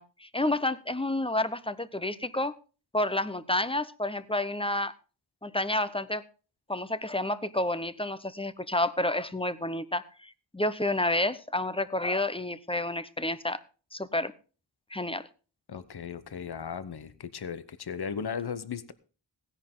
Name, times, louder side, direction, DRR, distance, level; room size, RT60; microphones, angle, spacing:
voice 1, 0.0-2.5 2.9-4.9 5.4-6.2 6.7-13.6 13.9-14.3 14.9-15.3, left 1 dB, 10° left, 0.8 m, -30 dB
voice 2, 15.7-18.9, left 6 dB, 55° left, 1.0 m, -36 dB
16.5 x 10.0 x 3.7 m
wide cardioid pair, 60°, 46 cm